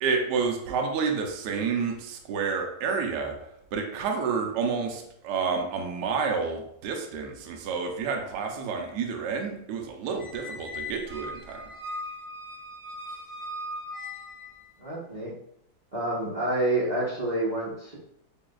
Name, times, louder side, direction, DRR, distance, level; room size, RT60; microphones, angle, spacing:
voice 1, 0.0-3.3 3.7-11.6, right 5 dB, 70° right, 3 dB, 1.2 m, -29 dB
Squeak, 10.2-14.7, left 1 dB, 50° left, 1.6 m, -39 dB
voice 2, 14.8-15.3 15.9-18.0, right 1 dB, 35° right, -9 dB, 0.7 m, -28 dB
6.9 x 2.8 x 2.4 m, 0.75 s
omnidirectional pair, 2.2 m